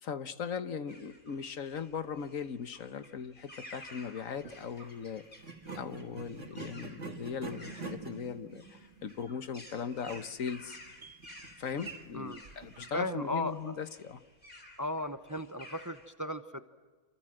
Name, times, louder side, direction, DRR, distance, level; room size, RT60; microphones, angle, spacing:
voice 1, 0.0-5.2 5.7-10.8 11.6-14.2, left 6 dB, 70° left, 11 dB, 1.6 m, -39 dB
sound 1, 0.9-16.1, left 1 dB, 35° left, 3.9 m, -54 dB
sound 2, 4.3-4.6 5.4-12.9, right 4 dB, 55° right, 2.6 m, -46 dB
voice 2, 12.9-13.8 14.8-16.6, left 1 dB, 15° right, 10 dB, 0.8 m, -36 dB
28.0 x 27.0 x 7.8 m, 1.3 s
omnidirectional pair, 1.5 m